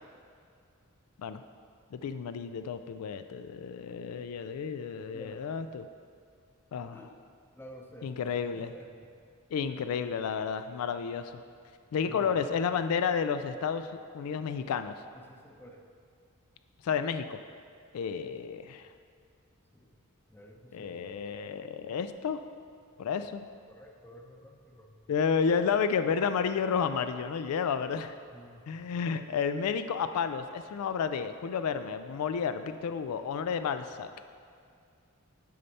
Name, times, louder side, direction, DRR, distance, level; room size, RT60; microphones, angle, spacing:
voice 1, 1.9-5.9 6.7-7.0 8.0-8.7 9.5-11.4 11.9-13.9 14.1-14.9 16.8-17.4 17.9-18.9 20.7-22.4 23.0-23.4 25.1-28.1 28.7-34.1, left 6 dB, 85° left, 10 dB, 0.3 m, -31 dB
voice 2, 7.5-9.1 12.0-12.3 15.1-15.9 19.7-19.9 20.3-21.0 23.7-24.9 28.3-28.7, equal, 10° left, 1 dB, 0.7 m, -51 dB
8.5 x 5.6 x 4.1 m, 2.3 s
head